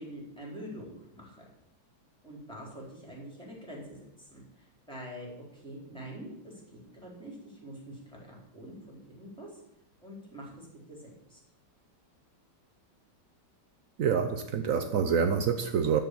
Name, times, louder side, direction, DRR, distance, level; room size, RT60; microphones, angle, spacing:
voice 1, 0.0-1.5 2.2-9.6 10.0-11.4, equal, ahead, -3 dB, 4.0 m, -45 dB
voice 2, 14.0-16.0, right 7 dB, 75° right, 7 dB, 0.7 m, -27 dB
13.5 x 5.5 x 8.4 m, 0.80 s
omnidirectional pair, 2.4 m